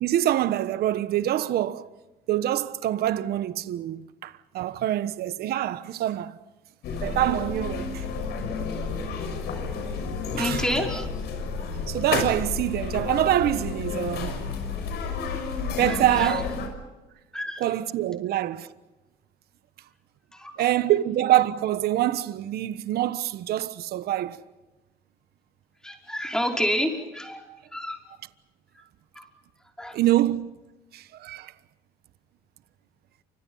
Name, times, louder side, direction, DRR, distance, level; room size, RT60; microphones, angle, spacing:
voice 1, 0.0-1.9 2.3-6.3 7.0-8.0 10.4-10.6 11.9-14.3 15.8-16.5 17.6-18.7 20.6-24.4 29.9-30.5 30.9-31.5, right 13 dB, 70° right, 1.3 m, -25 dB
sound 1, 6.8-16.7, left 5 dB, 75° left, 6.4 m, -31 dB
voice 2, 10.3-11.1 15.9-16.3 17.3-17.6 20.3-20.5 25.8-27.4 27.7-28.0 29.2-29.3 29.8-30.0, equal, 5° left, 5.3 m, -29 dB
29.0 x 26.0 x 5.6 m
cardioid pair, 110°, 17 cm